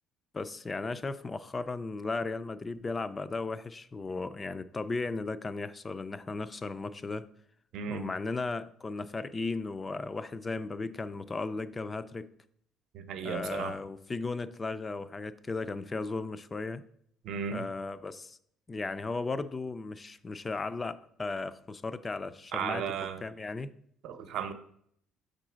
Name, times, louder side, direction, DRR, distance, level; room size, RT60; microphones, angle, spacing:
voice 1, 0.3-7.3 7.9-12.3 13.2-16.8 17.5-18.4 18.7-22.8 23.2-23.7, left 3 dB, 20° left, 14 dB, 0.3 m, -36 dB
voice 2, 7.7-8.1 12.9-13.8 17.2-17.6 22.5-23.2 24.0-24.5, right 7 dB, 60° right, 9 dB, 0.7 m, -35 dB
6.7 x 3.9 x 6.0 m, 0.67 s
cardioid pair, 155°, 0 cm